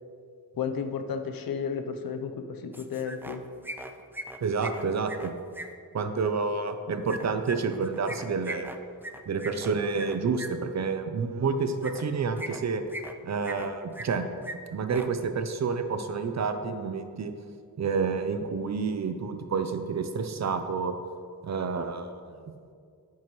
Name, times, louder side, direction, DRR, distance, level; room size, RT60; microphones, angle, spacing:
voice 1, 0.6-3.4, left 6 dB, 80° left, 7 dB, 0.8 m, -33 dB
sound 1, 2.7-3.4 3.6-5.7 7.1-10.5 11.8-12.0 12.4-13.1 13.4-14.2 14.4-14.6 14.8-15.1, right 1 dB, 5° right, 0.4 m, -39 dB
voice 2, 4.4-5.3 5.9-8.7 9.3-12.8 13.2-14.3 14.7-17.3 17.8-20.9 21.4-22.3, right 5 dB, 50° right, 8 dB, 0.7 m, -29 dB
11.0 x 9.2 x 3.2 m, 2.2 s
wide cardioid pair, 150°, 35 cm